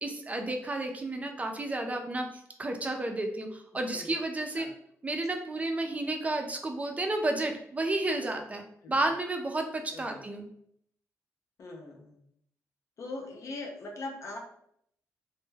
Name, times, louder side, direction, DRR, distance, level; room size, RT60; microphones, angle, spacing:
voice 1, 0.0-4.7 5.0-10.5, right 2 dB, 25° right, 4 dB, 0.4 m, -32 dB
voice 2, 3.7-4.1 4.5-4.7 8.8-9.1 9.9-10.2 11.6-12.2 13.0-14.4, left 2 dB, 60° left, 1 dB, 0.5 m, -41 dB
2.1 x 2.1 x 3.2 m, 0.69 s
cardioid pair, 85°, 6 cm